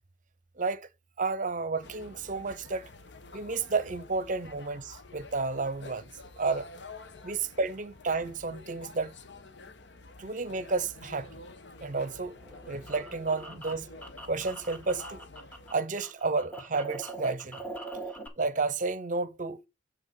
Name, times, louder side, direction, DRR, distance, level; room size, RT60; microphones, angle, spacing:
voice 1, 0.6-0.9 1.2-2.9 3.3-6.1 6.4-6.7 7.2-9.1 10.2-11.4 11.8-13.9 14.2-15.3 15.7-17.6 18.4-19.6, right 3 dB, 45° right, 0.7 m, -31 dB
sound 1, 1.8-15.8, left 3 dB, 75° left, 1.1 m, -49 dB
sound 2, 12.4-15.7 16.0-18.3, right 2 dB, 10° left, 1.8 m, -42 dB
7.8 x 4.3 x 6.4 m
head